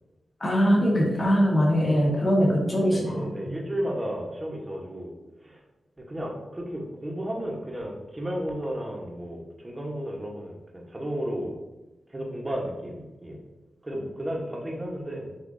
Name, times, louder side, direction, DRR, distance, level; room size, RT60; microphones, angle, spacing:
voice 1, 0.4-3.6, equal, 30° left, -3 dB, 1.5 m, -22 dB
voice 2, 2.9-5.1 5.4-5.6 6.0-11.6 12.1-13.4 13.8-15.3, equal, 25° right, -1 dB, 1.0 m, -33 dB
6.6 x 2.6 x 2.6 m, 1.1 s
cardioid pair, 60°, 0 cm